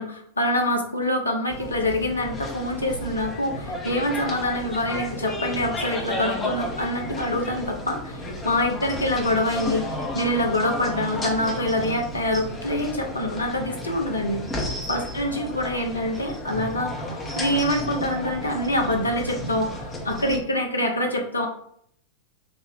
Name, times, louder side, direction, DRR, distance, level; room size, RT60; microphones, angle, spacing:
voice 1, 0.0-9.8 10.1-14.4 14.9-21.5, left 1 dB, 80° left, 2 dB, 0.9 m, -25 dB
sound 1, 1.5-20.4, left 1 dB, 20° left, 1.1 m, -33 dB
4.7 x 2.7 x 4.1 m, 0.67 s
figure-of-eight pair, 90°, 0 cm